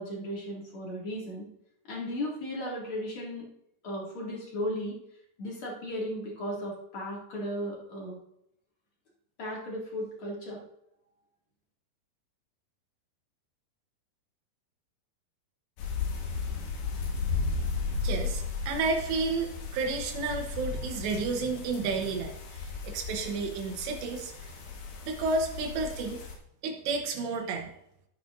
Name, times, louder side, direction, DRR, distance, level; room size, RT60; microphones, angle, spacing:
voice 1, 0.0-1.4 1.9-3.5 3.8-4.9 5.4-8.2 9.4-10.6, equal, 40° left, -3 dB, 2.3 m, -35 dB
sound 1, 15.8-26.3, left 4 dB, 80° left, 3.7 m, -35 dB
voice 2, 18.0-24.3 25.0-26.2 26.6-27.7, right 4 dB, 90° right, 2 dB, 3.3 m, -31 dB
13.0 x 8.7 x 2.6 m, 0.76 s
omnidirectional pair, 4.9 m